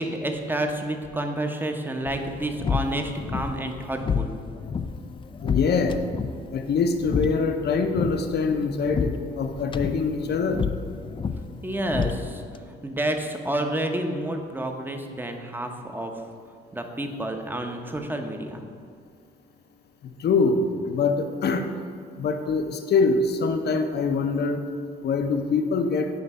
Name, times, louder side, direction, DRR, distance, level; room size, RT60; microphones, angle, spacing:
voice 1, 0.0-4.3 11.6-16.2 16.7-18.6, right 1 dB, 10° right, 4 dB, 0.8 m, -29 dB
sound 1, 2.1-12.6, left 6 dB, 25° left, 0.4 m, -31 dB
voice 2, 5.4-6.0 6.5-10.6 20.2-21.6 22.2-24.6 25.0-26.1, left 4 dB, 55° left, 6 dB, 0.7 m, -24 dB
9.4 x 3.3 x 5.5 m, 2.2 s
cardioid pair, 90°, 20 cm